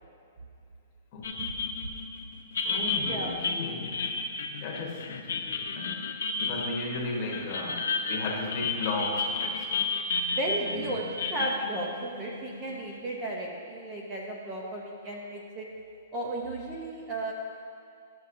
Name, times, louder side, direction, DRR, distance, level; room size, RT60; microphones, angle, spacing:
sound 1, 1.2-13.0, left 4 dB, 75° left, 0.6 m, -32 dB
voice 1, 2.6-4.1 4.6-6.0 6.4-9.9 10.7-10.9, left 3 dB, 25° left, -2 dB, 1.1 m, -35 dB
voice 2, 10.3-15.7 16.1-17.3, right 1 dB, 15° right, -2 dB, 0.6 m, -34 dB
11.5 x 6.8 x 2.6 m, 2.5 s
hypercardioid pair, 180°, 0 cm